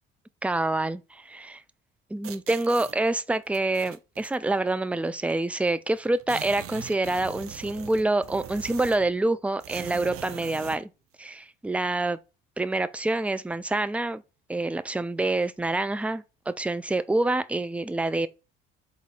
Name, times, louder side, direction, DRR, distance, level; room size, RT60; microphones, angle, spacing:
voice 1, 0.4-1.6 2.1-10.9 11.2-12.2 12.6-14.2 14.5-18.3, right 2 dB, 5° right, 0.3 m, -27 dB
sound 1, 2.2-2.9 3.5-4.4 5.3-5.4 5.6-5.7 6.0-9.1 9.6-10.8, right 11 dB, 50° right, 0.6 m, -41 dB
4.0 x 2.5 x 4.7 m
hypercardioid pair, 60°, 29 cm